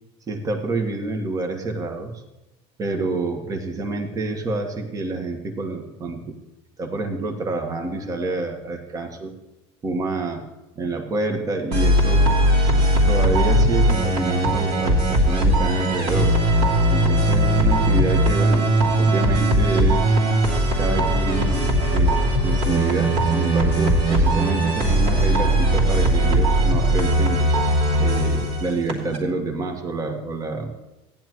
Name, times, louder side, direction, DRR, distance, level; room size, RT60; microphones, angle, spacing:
voice 1, 0.3-2.2 2.8-6.3 6.8-9.3 9.8-10.5 10.7-12.3 13.1-16.4 16.9-20.2 20.8-27.4 28.0-30.7, right 3 dB, 25° right, 4 dB, 1.5 m, -27 dB
sound 1, 11.7-29.2, right 1 dB, 60° right, 3.0 m, -19 dB
14.5 x 10.5 x 3.1 m, 1.0 s
supercardioid pair, 130°, 13 cm